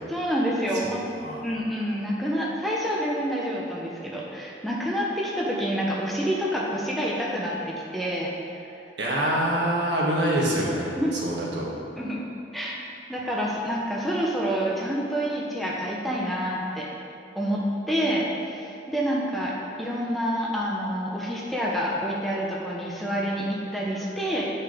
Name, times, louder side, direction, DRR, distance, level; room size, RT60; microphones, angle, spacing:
voice 1, 0.1-1.1 1.4-8.3 11.0-11.1 12.0-12.2 12.5-12.7 13.1-16.9 17.3-24.5, equal, ahead, -4 dB, 0.8 m, -28 dB
voice 2, 9.0-10.9 11.2-11.7, right 1 dB, 65° right, -4 dB, 1.5 m, -25 dB
8.0 x 4.8 x 5.0 m, 2.7 s
head